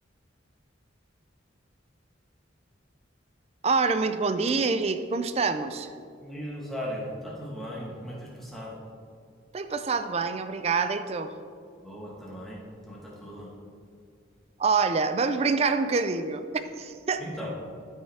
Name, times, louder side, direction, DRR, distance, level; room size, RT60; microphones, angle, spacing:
voice 1, 3.6-5.9 9.5-11.3 14.6-16.4 16.8-17.2, right 4 dB, 30° right, 10 dB, 0.3 m, -26 dB
voice 2, 6.2-8.8 11.8-13.5 17.2-17.5, equal, ahead, -5 dB, 1.4 m, -37 dB
12.5 x 5.4 x 3.5 m, 2.3 s
head